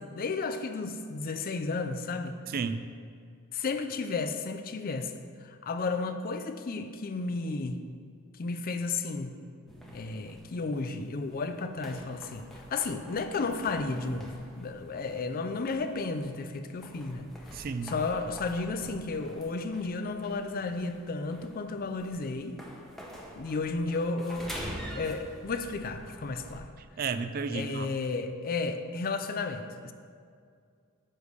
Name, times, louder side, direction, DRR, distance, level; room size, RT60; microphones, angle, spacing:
voice 1, 0.0-2.4 3.5-5.1 5.4-7.8 8.4-9.4 9.9-22.6 23.4-24.5 24.9-26.7 27.5-29.9, left 3 dB, 40° left, 8 dB, 0.4 m, -33 dB
voice 2, 2.5-2.9 17.5-17.9 26.8-27.9, right 5 dB, 40° right, 11 dB, 0.3 m, -33 dB
sound 1, 9.7-26.6, equal, ahead, 0.8 m, -47 dB
9.8 x 3.3 x 6.6 m, 2.3 s
head